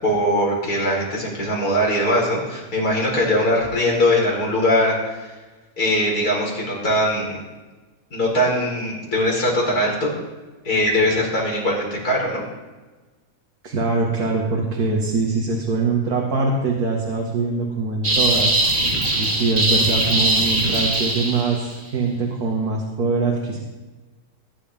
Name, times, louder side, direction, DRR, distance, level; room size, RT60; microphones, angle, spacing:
voice 1, 0.0-5.3 5.8-7.4 8.1-10.1 10.6-12.4, left 1 dB, 80° left, -3 dB, 5.2 m, -21 dB
voice 2, 13.6-18.6 19.2-23.6, right 3 dB, 75° right, -3 dB, 2.5 m, -23 dB
sound 1, 18.0-21.7, right 1 dB, 35° right, 1.9 m, -20 dB
21.0 x 11.5 x 3.7 m, 1.2 s
omnidirectional pair, 1.6 m